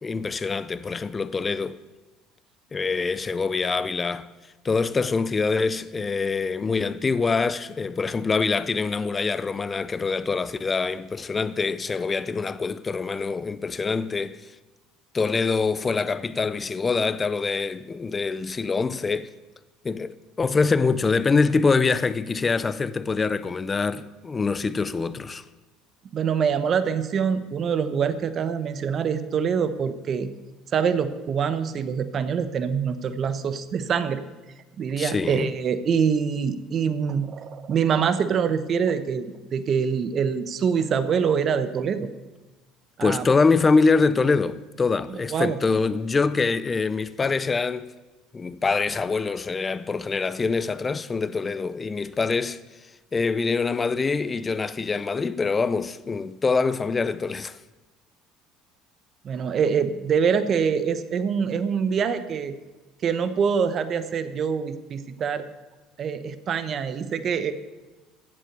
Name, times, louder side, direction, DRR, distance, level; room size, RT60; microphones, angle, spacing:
voice 1, 0.0-1.8 2.7-4.3 4.6-14.5 15.1-19.3 19.8-25.4 35.0-35.5 43.0-47.9 48.3-52.6 53.1-57.6, left 4 dB, 20° left, 0.5 m, -24 dB
voice 2, 26.1-30.3 30.7-34.2 34.8-42.1 43.0-43.3 45.3-45.6 59.2-62.5 63.0-65.4 66.0-67.5, right 6 dB, 40° right, 1.0 m, -25 dB
15.0 x 7.4 x 8.1 m
cardioid pair, 130°, 0 cm